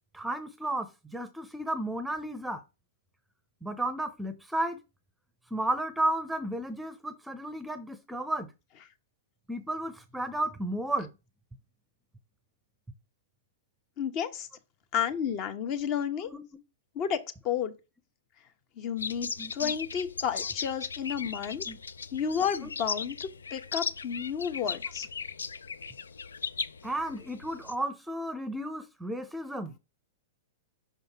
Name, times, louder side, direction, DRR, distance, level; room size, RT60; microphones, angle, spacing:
voice 1, 0.1-2.6 3.6-4.8 5.5-8.5 9.5-11.1 16.2-16.4 19.4-19.7 21.7-21.8 26.8-29.7, right 1 dB, 5° right, 0.7 m, -33 dB
voice 2, 14.0-14.5 14.9-16.3 16.9-17.7 18.8-21.6 22.1-25.1, left 8 dB, 40° left, 0.9 m, -31 dB
sound 1, 19.0-27.7, left 5 dB, 80° left, 0.4 m, -37 dB
5.8 x 5.2 x 3.5 m
hypercardioid pair, 110°, 0 cm